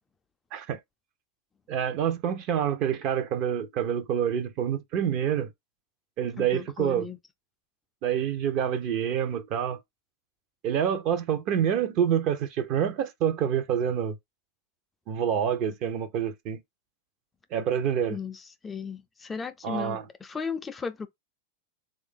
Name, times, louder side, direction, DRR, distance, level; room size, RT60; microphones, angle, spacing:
voice 1, 1.7-5.5 6.2-7.1 8.0-9.8 10.6-14.2 15.1-16.6 17.5-18.2 19.6-20.1, right 9 dB, 45° right, 0.7 m, -27 dB
voice 2, 6.4-7.2 18.1-21.1, left 5 dB, 15° left, 0.4 m, -36 dB
3.3 x 2.5 x 3.6 m
hypercardioid pair, 125°, 0 cm